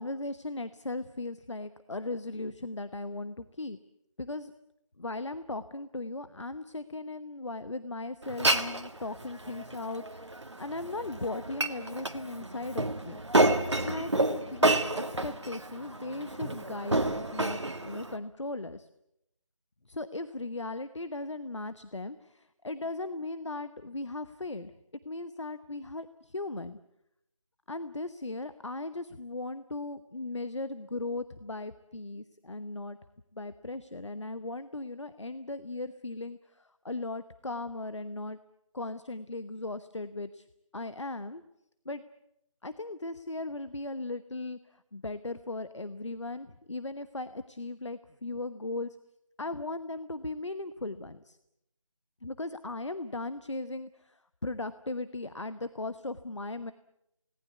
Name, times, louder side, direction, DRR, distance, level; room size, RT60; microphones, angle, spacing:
voice 1, 0.0-3.8 4.2-4.5 5.0-13.2 13.8-18.9 19.9-24.7 25.0-26.8 27.7-33.0 33.3-38.4 38.7-40.5 40.7-41.4 41.8-42.0 42.6-49.0 49.4-51.4 52.2-56.7, left 2 dB, 60° left, 12 dB, 1.1 m, -37 dB
Glass, 8.2-18.2, right 2 dB, 55° right, 1.8 m, -30 dB
28.5 x 19.0 x 8.2 m, 0.82 s
figure-of-eight pair, 165°, 17 cm